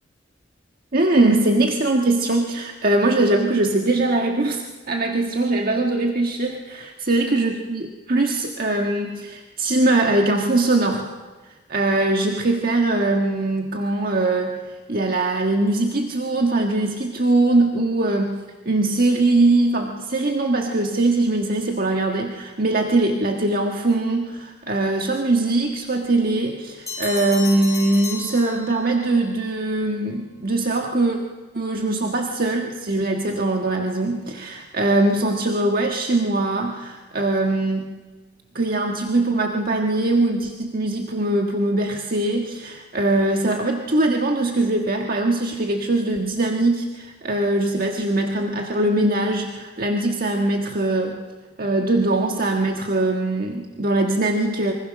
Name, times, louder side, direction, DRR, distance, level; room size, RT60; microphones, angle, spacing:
voice 1, 0.9-11.1 11.7-31.2 31.5-38.0 38.5-51.3 51.6-54.7, right 2 dB, 55° right, 2 dB, 1.6 m, -21 dB
Bell, 26.9-29.1, left 4 dB, 20° left, 7.9 m, -33 dB
25.5 x 25.0 x 6.4 m, 1.3 s
head